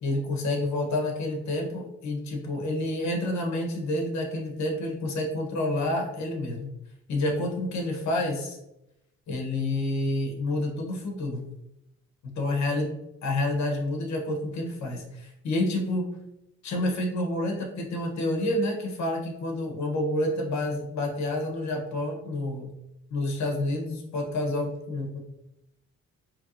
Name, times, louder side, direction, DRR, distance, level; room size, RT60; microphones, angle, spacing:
voice 1, 0.0-6.7 7.1-8.6 9.3-11.4 12.4-12.9 13.2-16.1 16.6-22.7 23.1-25.2, left 1 dB, 65° left, 1 dB, 1.2 m, -29 dB
4.5 x 3.2 x 2.7 m, 0.87 s
cardioid pair, 90°, 30 cm